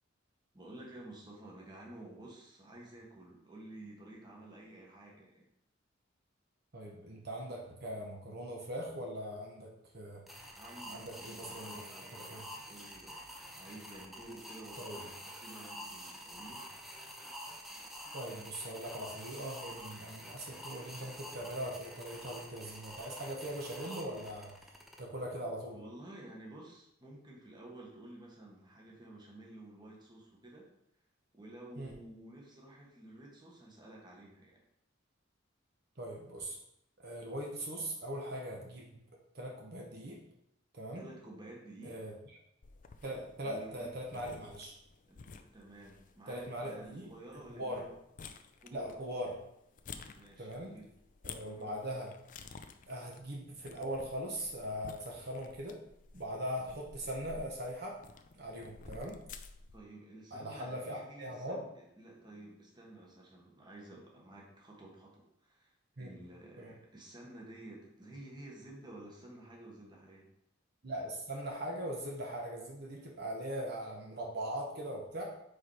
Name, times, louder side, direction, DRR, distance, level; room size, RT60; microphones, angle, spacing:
voice 1, 0.5-5.5 10.5-13.2 13.5-15.1 15.4-16.6 25.7-30.7 31.3-34.6 40.9-42.0 43.4-43.9 45.1-47.9 48.6-49.0 50.1-50.9 51.4-51.7 56.6-56.7 59.7-65.7 66.0-70.3, right 1 dB, 20° right, -2 dB, 1.3 m, -52 dB
voice 2, 6.7-10.2 10.9-11.8 12.1-12.5 14.8-15.0 18.1-24.5 25.0-25.8 31.8-32.0 36.0-36.6 37.0-38.9 39.3-40.2 40.7-41.0 41.8-42.1 43.0-44.7 46.3-47.1 47.5-47.9 48.7-49.3 50.4-50.7 51.2-52.1 52.9-55.8 56.1-58.0 58.4-59.2 60.3-61.6 66.0-66.1 66.6-66.8 70.8-75.2, equal, 55° right, -1 dB, 1.0 m, -40 dB
sound 1, 10.3-25.0, equal, ahead, 0.6 m, -48 dB
sound 2, 42.6-59.8, left 5 dB, 40° left, 0.4 m, -53 dB
4.9 x 4.3 x 4.8 m, 0.78 s
head